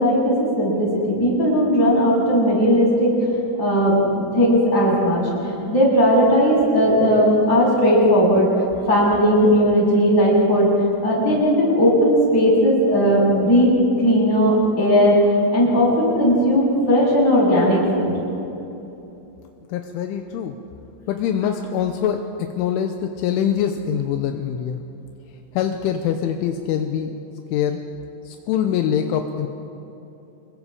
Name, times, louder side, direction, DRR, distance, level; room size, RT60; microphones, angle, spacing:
voice 1, 0.0-3.1 3.6-10.7 11.0-13.7 14.0-15.2 15.5-18.1, equal, 20° left, -5 dB, 7.7 m, -17 dB
voice 2, 19.7-20.6 21.1-24.8 25.5-27.1 27.5-27.8 28.3-29.5, left 9 dB, 80° left, 5 dB, 3.3 m, -24 dB
28.0 x 21.5 x 5.0 m, 2.9 s
omnidirectional pair, 5.6 m